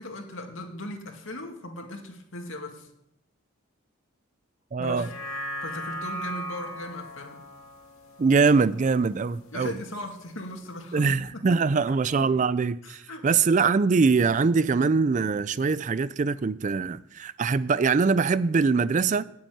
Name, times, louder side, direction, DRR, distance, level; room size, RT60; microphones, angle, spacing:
voice 1, 0.0-2.9 4.8-5.0 5.6-7.4 9.5-11.4 11.9-12.5 12.8-13.3, left 1 dB, 70° left, 2.3 m, -38 dB
voice 2, 4.7-5.1 8.2-9.7 10.9-19.2, right 4 dB, 35° right, 0.4 m, -23 dB
sound 1, 4.9-9.4 9.8-9.9, equal, 90° left, 2.2 m, -38 dB
9.0 x 8.7 x 9.3 m
head